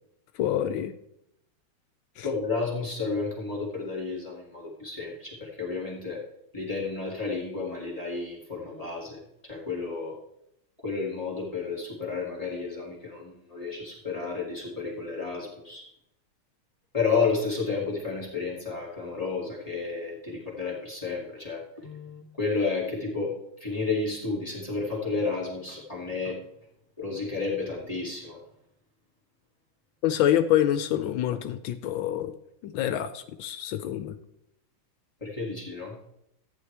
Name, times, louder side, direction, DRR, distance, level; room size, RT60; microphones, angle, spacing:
voice 1, 0.4-0.9 2.2-2.3 30.0-32.4 32.6-34.2, left 11 dB, 75° left, 11 dB, 1.3 m, -26 dB
voice 2, 2.2-6.2 6.5-10.2 10.8-15.9 16.9-23.3 23.6-26.4 27.0-28.4 35.2-36.0, left 4 dB, 15° left, -4 dB, 2.3 m, -31 dB
14.0 x 9.6 x 3.3 m, 0.79 s
omnidirectional pair, 2.2 m